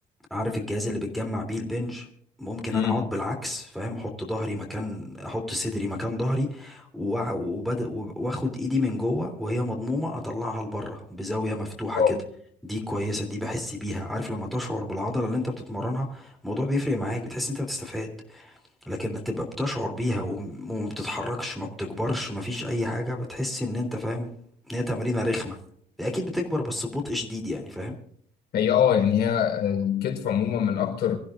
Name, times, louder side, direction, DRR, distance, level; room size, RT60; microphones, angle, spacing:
voice 1, 0.3-2.1 2.4-12.1 12.6-18.6 18.9-24.3 24.7-25.6 26.0-28.0, left 1 dB, ahead, 3.3 m, -30 dB
voice 2, 2.7-3.0 11.9-12.2 28.5-31.2, left 8 dB, 65° left, 4.4 m, -23 dB
25.5 x 15.0 x 2.6 m
cardioid pair, 145°, 18 cm